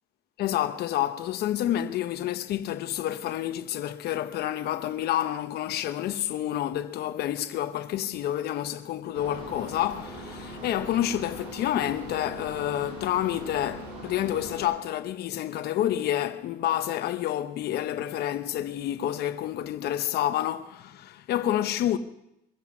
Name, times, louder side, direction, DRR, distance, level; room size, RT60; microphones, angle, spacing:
voice 1, 0.4-22.0, left 12 dB, 70° left, 0.8 m, -29 dB
sound 1, 9.1-14.6, right 1 dB, 75° right, 6.1 m, -41 dB
23.0 x 8.5 x 6.0 m
cardioid pair, 110°, 17 cm